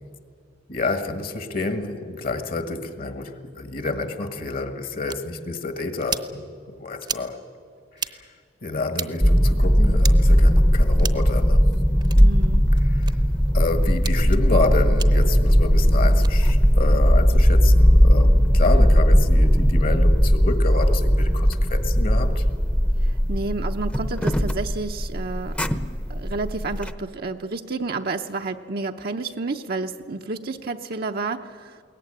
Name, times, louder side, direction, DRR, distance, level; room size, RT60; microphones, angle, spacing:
voice 1, 0.7-6.4 6.7-7.4 7.9-8.3 8.6-11.7 12.8-13.2 13.5-22.5, left 3 dB, 55° left, 9 dB, 1.6 m, -28 dB
sound 1, 5.1-5.2 6.0-6.3 7.0-7.3 7.9-8.1 8.9-9.1 10.0-10.2 11.0-11.3 12.0-12.2 13.0-13.1 14.0-14.2 15.0-15.1 16.1-16.3, right 6 dB, 25° right, 0.8 m, -31 dB
sound 2, 9.2-26.9, equal, 5° left, 0.8 m, -18 dB
voice 2, 12.2-12.6 23.0-25.6 26.1-31.8, right 3 dB, 55° right, 5 dB, 0.8 m, -30 dB
22.0 x 18.0 x 10.0 m, 2.2 s
head